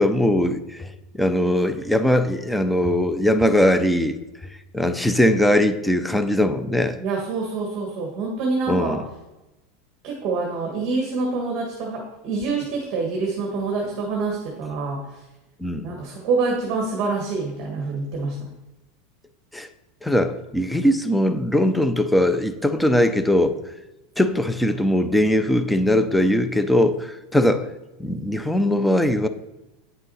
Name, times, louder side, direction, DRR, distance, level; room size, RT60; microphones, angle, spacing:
voice 1, 0.0-4.2 4.7-7.0 8.7-9.0 15.6-15.9 19.5-19.7 20.0-23.7 24.2-27.7 28.0-29.3, left 1 dB, ahead, 0.4 m, -20 dB
voice 2, 7.0-9.0 10.0-15.2 15.8-18.4, right 4 dB, 35° right, 1.4 m, -26 dB
9.1 x 6.2 x 4.2 m
supercardioid pair, 175°, 0 cm